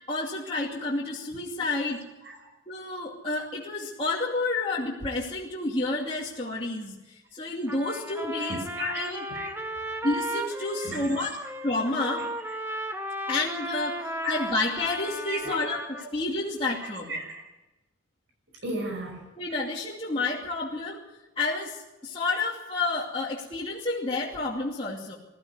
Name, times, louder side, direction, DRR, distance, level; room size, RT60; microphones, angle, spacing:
voice 1, 0.1-2.0 2.7-9.2 10.0-11.3 11.6-12.2 13.3-15.8 16.1-17.1 19.4-21.0 21.4-25.2, left 2 dB, 30° left, -5 dB, 2.7 m, -30 dB
Trumpet, 7.7-16.1, right 1 dB, 10° right, 1.4 m, -35 dB
voice 2, 8.4-9.8 10.6-11.5 12.2-12.6 13.9-14.3 15.3-15.6 16.0-16.1 16.6-17.4 18.6-19.3, right 2 dB, 65° right, 2 dB, 6.0 m, -38 dB
22.0 x 14.0 x 9.7 m, 1.0 s
head